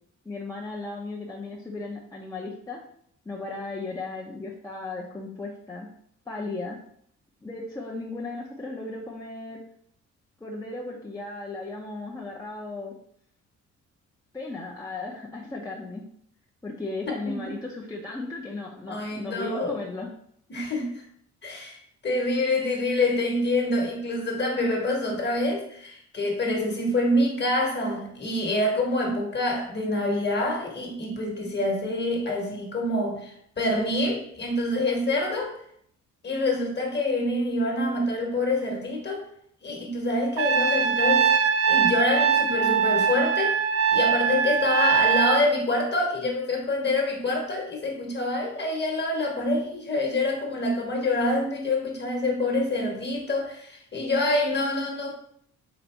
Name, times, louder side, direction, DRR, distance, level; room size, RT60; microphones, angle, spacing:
voice 1, 0.2-2.8 3.3-5.9 6.3-6.8 7.4-9.6 10.4-12.9 14.3-16.1 16.6-20.1, left 3 dB, 10° left, -4 dB, 0.6 m, -36 dB
voice 2, 17.1-17.6 18.9-19.8 20.5-21.0 21.4-21.8 22.0-35.6 36.2-39.2 39.6-41.3 41.7-43.6 43.9-55.1, left 2 dB, 35° left, 1 dB, 1.2 m, -26 dB
Trumpet, 40.4-45.4, right 6 dB, 50° right, 0.4 m, -22 dB
4.0 x 2.6 x 4.3 m, 0.67 s
cardioid pair, 95°, 31 cm